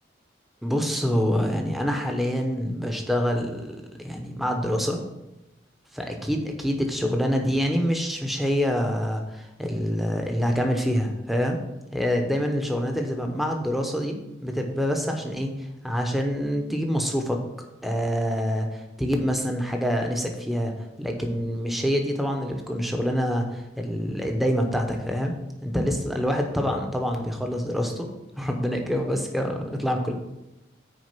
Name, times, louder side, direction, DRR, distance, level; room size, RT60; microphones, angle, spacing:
voice 1, 0.6-5.0 5.9-11.6 11.9-14.2 14.4-17.4 17.8-25.3 25.6-30.1, equal, ahead, 3 dB, 0.8 m, -26 dB
6.3 x 4.8 x 6.0 m, 0.95 s
head